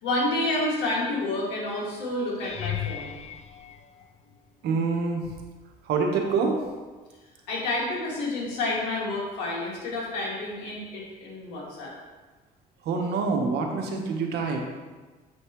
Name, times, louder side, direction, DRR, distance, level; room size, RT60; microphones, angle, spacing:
voice 1, 0.0-3.1 7.5-11.9, left 2 dB, 90° left, -4 dB, 2.1 m, -29 dB
sound 1, 2.4-4.7 5.4-5.9 6.2-6.4 10.7-10.8, left 10 dB, 40° left, 0.5 m, -37 dB
voice 2, 4.6-5.2 5.9-6.6 12.8-14.6, right 4 dB, 75° right, 2 dB, 1.1 m, -26 dB
7.7 x 5.5 x 3.1 m, 1.3 s
cardioid pair, 110°, 17 cm